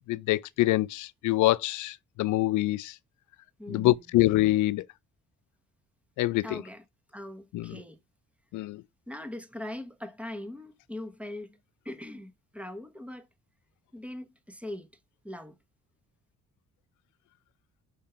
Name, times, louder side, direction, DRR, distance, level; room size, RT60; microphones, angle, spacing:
voice 1, 0.1-2.9 3.7-4.9 6.2-6.6 7.5-7.8 8.5-8.8, left 17 dB, 75° left, 0.5 m, -25 dB
voice 2, 3.6-4.0 6.4-6.8 7.1-8.0 9.1-11.6 11.8-13.3 13.9-14.9 15.2-15.5, left 1 dB, 5° right, 1.1 m, -41 dB
5.4 x 3.7 x 5.6 m
cardioid pair, 90°, 30 cm